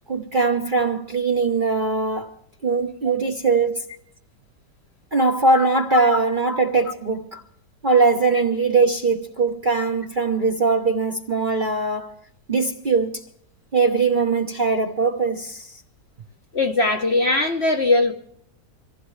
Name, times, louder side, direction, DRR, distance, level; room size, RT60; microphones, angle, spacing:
voice 1, 0.1-2.3 2.6-3.8 5.1-7.4 7.8-12.1 12.5-13.2 13.7-15.7, right 4 dB, 35° right, 0.9 m, -21 dB
voice 2, 16.5-18.1, left 2 dB, 45° left, 1.1 m, -20 dB
26.0 x 15.5 x 3.2 m
omnidirectional pair, 1.9 m